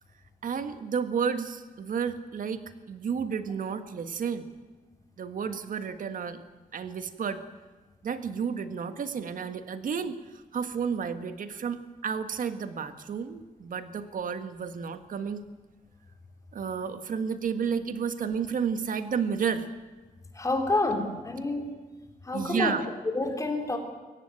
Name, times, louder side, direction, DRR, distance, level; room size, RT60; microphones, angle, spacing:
voice 1, 0.4-4.5 5.2-6.4 6.7-7.4 8.0-15.4 16.5-19.7 22.3-22.8, right 6 dB, 65° right, 10 dB, 1.6 m, -31 dB
voice 2, 20.3-21.7 22.2-22.8 23.1-23.8, left 2 dB, 20° left, 4 dB, 3.5 m, -28 dB
23.0 x 18.5 x 9.1 m, 1.2 s
wide cardioid pair, 165°, 15 cm